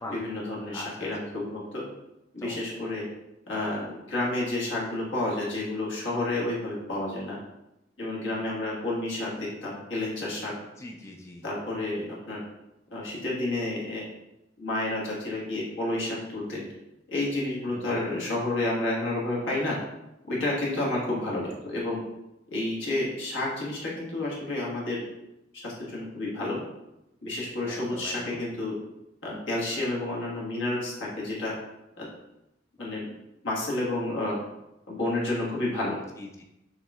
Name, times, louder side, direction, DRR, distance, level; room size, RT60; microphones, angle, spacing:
voice 1, 0.1-1.8 2.3-3.1 3.5-7.4 8.0-10.5 11.4-12.4 12.9-14.0 14.6-16.7 17.1-19.8 20.2-22.0 22.5-25.0 25.5-26.6 27.2-28.8 29.2-31.5 32.0-32.1 32.8-33.0 33.4-34.4 34.9-35.9, left 2 dB, 80° left, -5 dB, 1.5 m, -30 dB
voice 2, 0.7-1.1 2.4-2.6 8.2-8.5 10.8-11.4 17.7-18.0 27.6-28.4 32.8-32.9 36.2-36.4, left 1 dB, 15° left, 1 dB, 0.4 m, -42 dB
6.3 x 3.1 x 2.3 m, 0.91 s
head